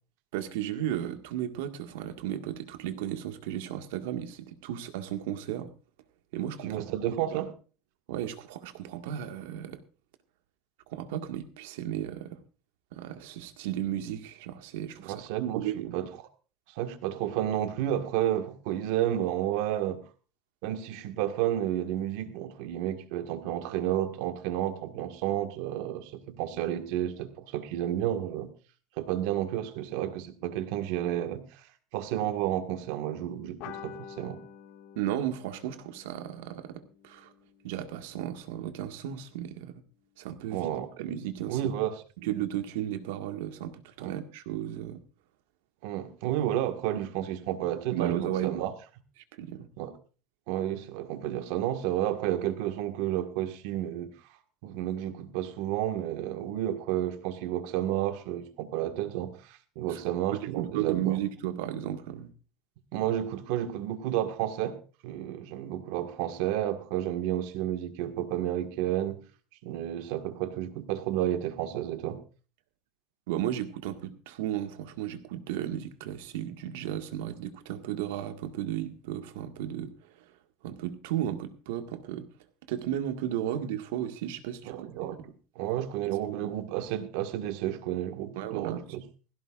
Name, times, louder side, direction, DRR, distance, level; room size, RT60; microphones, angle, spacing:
voice 1, 0.3-5.7 6.3-6.9 7.3-7.4 8.1-9.8 10.9-12.4 12.9-16.0 35.0-37.3 37.6-39.8 40.2-40.7 41.0-41.6 42.2-45.0 47.9-48.6 49.4-49.7 59.9-60.0 60.6-62.3 73.3-79.9 80.2-80.3 80.6-82.3 82.7-85.2 86.0-86.6 88.4-89.0, right 11 dB, 80° right, 1.8 m, -34 dB
voice 2, 6.7-7.5 15.0-16.1 16.7-20.0 20.6-28.5 29.0-31.6 31.9-34.4 40.5-40.9 41.5-41.9 44.0-44.1 45.8-48.7 49.8-49.9 50.5-54.1 54.6-61.2 62.9-64.8 65.0-69.2 69.6-72.2 84.6-85.2 85.5-89.0, right 12 dB, 60° right, 1.7 m, -31 dB
sound 1, 33.6-38.5, left 8 dB, 55° left, 1.7 m, -48 dB
17.5 x 15.5 x 2.5 m
cardioid pair, 175°, 0 cm